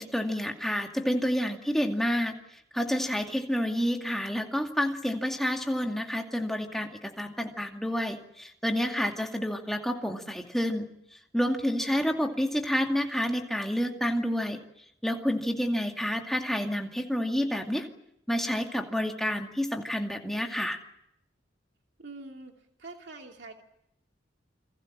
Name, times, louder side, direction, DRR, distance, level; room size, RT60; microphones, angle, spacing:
voice 1, 0.0-2.3 2.7-10.9 11.3-14.6 15.0-17.9 18.3-20.8, equal, ahead, 2 dB, 2.3 m, -29 dB
voice 2, 22.0-22.5 22.8-23.5, right 3 dB, 60° right, 2 dB, 2.8 m, -45 dB
29.0 x 22.5 x 7.5 m, 0.77 s
head